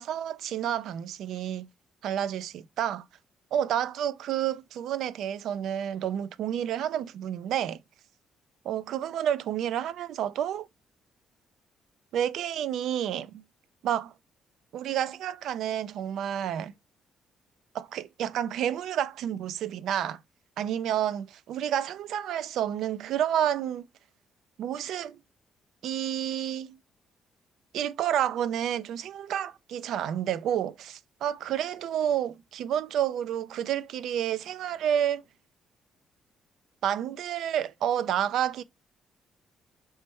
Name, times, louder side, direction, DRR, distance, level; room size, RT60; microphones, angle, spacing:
voice 1, 0.0-1.7 2.0-3.0 3.5-7.8 8.6-10.7 12.1-13.4 13.8-14.1 14.7-16.7 17.7-20.2 20.6-23.9 24.6-25.2 25.8-26.8 27.7-35.2 36.8-38.6, right 10 dB, 80° right, 0.3 m, -30 dB
3.2 x 3.1 x 4.4 m
cardioid pair, 90°, 0 cm